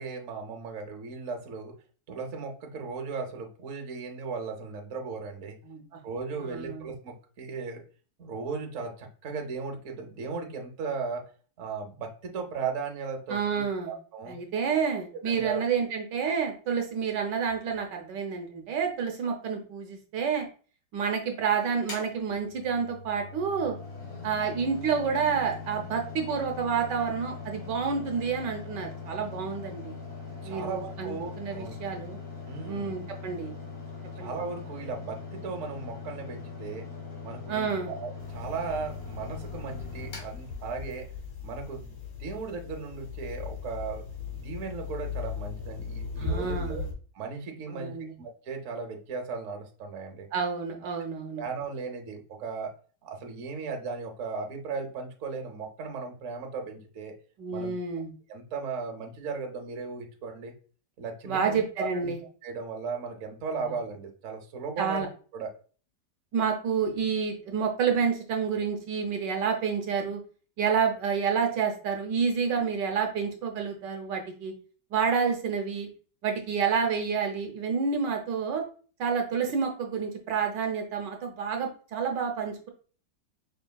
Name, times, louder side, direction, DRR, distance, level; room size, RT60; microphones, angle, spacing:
voice 1, 0.0-1.7 2.1-5.6 6.0-7.8 8.2-11.2 11.6-14.4 14.7-14.8 15.3-15.6 30.4-31.8 32.5-32.9 34.2-36.8 37.2-41.0 41.4-44.0 44.3-46.8 47.1-50.3 51.4-52.7 53.0-57.1 57.5-57.7 58.3-60.5 61.0-62.1 62.4-65.0 65.3-65.5, right 4 dB, 55° right, 3 dB, 1.0 m, -36 dB
voice 2, 5.6-6.0 6.4-6.9 13.3-13.9 14.3-20.5 20.9-23.8 24.2-30.0 30.4-32.2 32.6-33.5 34.2-34.3 37.5-37.9 46.2-46.9 47.7-48.1 50.3-51.4 57.4-58.1 61.2-62.2 64.8-65.1 66.3-70.2 70.6-74.5 74.9-75.9 76.2-78.6 79.0-82.7, right 6 dB, 75° right, 4 dB, 1.3 m, -29 dB
Mechanical fan, 21.8-41.2, left 5 dB, 45° left, 1.5 m, -41 dB
sound 1, 38.2-46.9, left 5 dB, 75° left, 2.0 m, -38 dB
5.4 x 3.1 x 2.2 m, 0.39 s
omnidirectional pair, 2.0 m